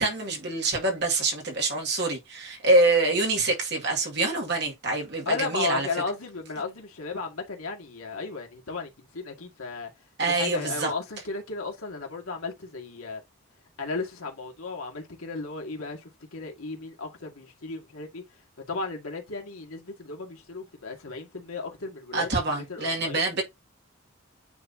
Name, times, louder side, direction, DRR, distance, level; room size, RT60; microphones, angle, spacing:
voice 1, 0.0-5.9 10.2-10.9 22.1-23.4, right 2 dB, 50° right, 2.2 m, -25 dB
voice 2, 5.3-9.9 10.3-13.2 13.8-18.2 18.7-23.2, left 4 dB, 85° left, 2.0 m, -35 dB
9.3 x 3.6 x 2.8 m
head